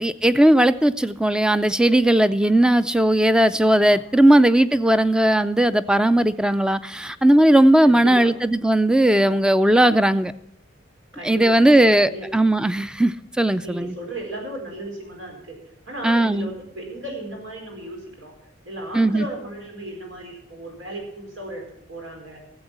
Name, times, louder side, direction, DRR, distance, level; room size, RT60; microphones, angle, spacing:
voice 1, 0.0-10.3 11.2-13.9 16.0-16.5 18.9-19.3, right 1 dB, 5° right, 0.4 m, -17 dB
voice 2, 3.9-4.3 7.8-8.3 11.1-12.3 13.6-15.5 15.9-18.3 18.6-22.4, right 1 dB, 85° right, 4.5 m, -35 dB
13.5 x 7.9 x 7.4 m
head